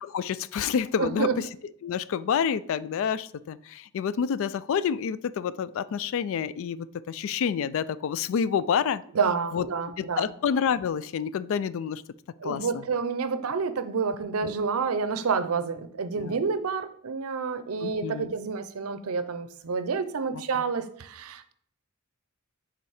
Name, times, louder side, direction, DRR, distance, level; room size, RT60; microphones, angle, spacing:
voice 1, 0.0-1.5 1.8-9.0 9.5-9.7 10.0-12.0 12.4-12.8 16.1-16.4 17.8-18.3 20.3-20.4, left 7 dB, 65° left, 18 dB, 0.3 m, -28 dB
voice 2, 1.0-1.4 9.1-10.3 12.4-21.5, right 5 dB, 85° right, 12 dB, 0.6 m, -29 dB
6.9 x 3.8 x 4.8 m, 0.64 s
head